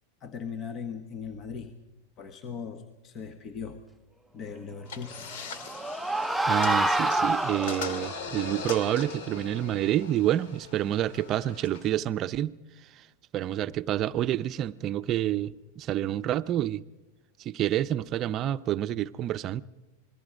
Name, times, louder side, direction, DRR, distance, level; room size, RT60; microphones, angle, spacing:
voice 1, 0.2-1.7 2.2-3.8 4.3-5.3, left 6 dB, 35° left, 1.4 m, -39 dB
sound 1, 4.9-12.0, left 5 dB, 65° left, 2.1 m, -40 dB
sound 2, 5.2-8.2, right 1 dB, 5° right, 0.7 m, -27 dB
voice 2, 6.5-12.6 13.0-13.1 13.3-16.8 17.4-19.6, right 12 dB, 40° right, 0.7 m, -28 dB
27.0 x 21.0 x 5.1 m
hypercardioid pair, 100°, 0 cm